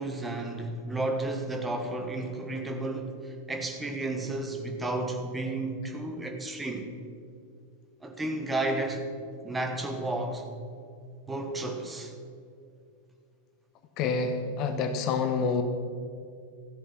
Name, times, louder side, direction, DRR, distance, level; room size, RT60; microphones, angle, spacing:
voice 1, 0.0-6.9 8.0-9.1 9.4-10.5 11.3-12.1, right 2 dB, 10° right, 1.3 m, -32 dB
voice 2, 14.0-15.6, left 5 dB, 40° left, 0.9 m, -27 dB
14.0 x 8.1 x 5.7 m
figure-of-eight pair, 90°, 0 cm